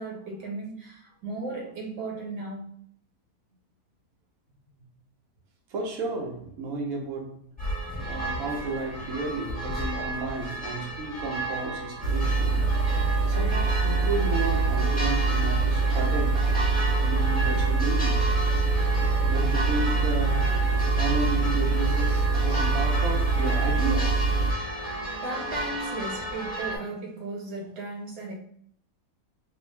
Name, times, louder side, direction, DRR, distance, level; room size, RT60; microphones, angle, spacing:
voice 1, 0.0-2.6 22.5-22.7 25.2-28.3, right 2 dB, 80° right, 1.8 m, -36 dB
voice 2, 5.7-7.5 8.0-12.6 13.3-16.4 17.0-18.3 19.3-20.5 21.0-24.2, right 3 dB, 65° right, 1.1 m, -33 dB
sound 1, 7.6-26.8, right 1 dB, 5° left, 1.0 m, -33 dB
sound 2, 12.0-24.5, right 3 dB, 45° right, 0.6 m, -24 dB
3.9 x 2.4 x 3.2 m
omnidirectional pair, 1.7 m